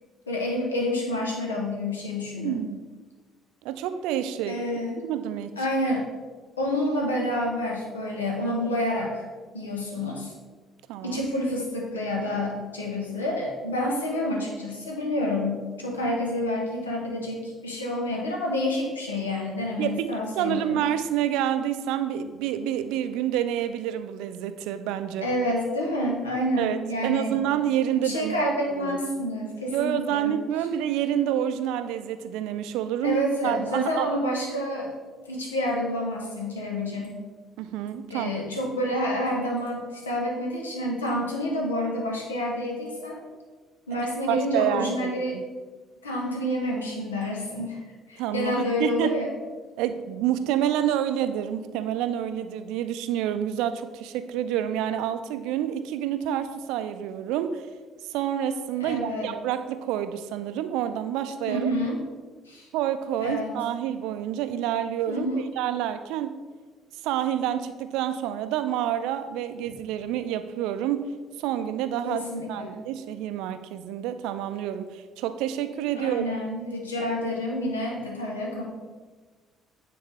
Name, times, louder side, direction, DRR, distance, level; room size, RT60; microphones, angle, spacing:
voice 1, 0.3-2.6 4.5-5.0 5.6-6.1 6.6-9.2 9.5-10.3 11.0-20.8 25.2-27.4 27.9-30.3 33.0-34.9 35.3-37.1 38.1-43.2 43.9-45.4 46.0-47.8 48.1-49.3 58.8-59.3 61.5-62.0 62.5-62.7 63.2-63.5 65.1-65.4 72.0-72.8 76.0-78.7, left 1 dB, 85° left, -1 dB, 1.0 m, -28 dB
voice 2, 2.4-2.8 3.6-4.6 5.0-5.6 10.9-11.2 19.8-25.3 26.6-28.5 28.8-29.0 29.7-34.1 37.6-38.3 44.3-45.4 48.2-49.1 49.8-57.7 58.1-61.7 62.7-66.4 67.0-72.2 72.5-76.2, right 10 dB, 65° right, 10 dB, 0.4 m, -28 dB
9.2 x 3.5 x 3.4 m, 1.4 s
figure-of-eight pair, 50°, 0 cm